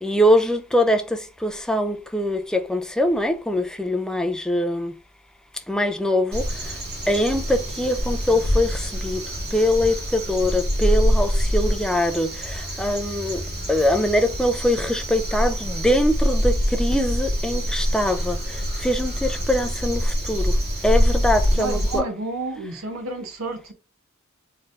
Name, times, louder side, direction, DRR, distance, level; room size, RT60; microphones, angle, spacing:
voice 1, 0.0-1.0 1.4-4.9 5.7-6.4 7.1-9.2 9.5-12.3 12.8-13.4 13.7-16.5 16.8-18.4 18.8-20.0 20.3-20.5 20.8-22.0, left 1 dB, 5° left, 0.3 m, -22 dB
Crow, 6.3-22.0, equal, 50° right, 1.6 m, -25 dB
voice 2, 21.5-23.7, right 2 dB, 70° right, 0.7 m, -30 dB
4.1 x 3.2 x 2.4 m
head